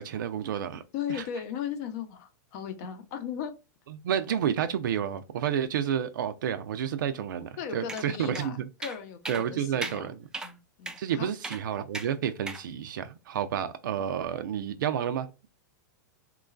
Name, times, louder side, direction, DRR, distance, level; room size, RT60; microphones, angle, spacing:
voice 1, 0.0-0.8 1.1-1.2 4.0-8.7 9.3-10.2 11.0-15.3, right 9 dB, 80° right, 0.4 m, -30 dB
voice 2, 0.9-3.5 7.6-10.1 10.4-11.3 14.0-14.1, left 8 dB, 55° left, 0.6 m, -37 dB
sound 1, 7.9-8.1 8.4-8.5 8.8-9.0 9.3-9.4 9.8-10.0 10.3-10.5 10.9-11.0 11.4-11.6 11.9-12.1 12.5-12.6, right 3 dB, 5° right, 0.3 m, -36 dB
3.0 x 2.3 x 2.4 m
hypercardioid pair, 125°, 10 cm